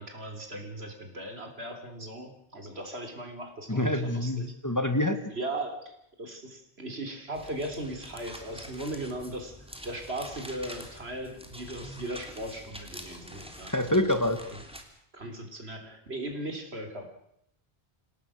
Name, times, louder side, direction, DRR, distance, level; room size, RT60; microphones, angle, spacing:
voice 1, 0.0-4.5 5.3-5.9 6.2-9.6 9.8-13.7 15.1-17.0, right 1 dB, 75° right, 5 dB, 3.8 m, -38 dB
voice 2, 3.7-5.2 13.7-14.4, left 1 dB, 15° left, 8 dB, 1.5 m, -26 dB
sound 1, 7.3-14.8, equal, 5° right, 3.0 m, -46 dB
27.0 x 18.0 x 6.4 m, 0.76 s
omnidirectional pair, 1.1 m